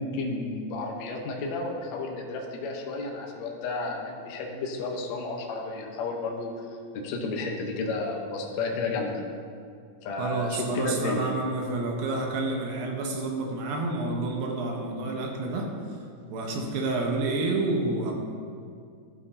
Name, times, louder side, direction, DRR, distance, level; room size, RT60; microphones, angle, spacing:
voice 1, 0.0-6.5 6.9-9.1 10.0-11.3, left 3 dB, 70° left, 0 dB, 1.8 m, -32 dB
voice 2, 10.2-15.7 16.3-18.1, right 2 dB, 85° right, 1 dB, 2.8 m, -29 dB
12.5 x 8.4 x 2.7 m, 2.3 s
omnidirectional pair, 4.0 m